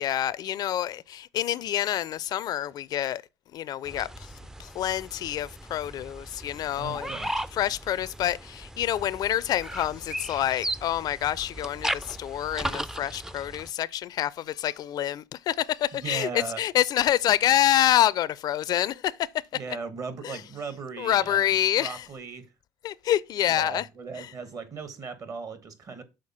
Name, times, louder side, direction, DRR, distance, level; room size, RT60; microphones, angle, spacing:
voice 1, 0.0-3.2 3.5-4.3 4.6-7.1 7.6-19.2 20.2-20.4 21.0-22.1 22.8-23.9 24.2-24.3, left 12 dB, 55° left, 0.4 m, -27 dB
sound 1, 3.9-13.7, right 1 dB, 5° right, 0.4 m, -36 dB
voice 2, 6.8-7.5 16.0-16.6 19.5-22.5 23.6-26.0, right 5 dB, 45° right, 1.4 m, -37 dB
6.6 x 4.1 x 5.4 m
supercardioid pair, 75°, 8 cm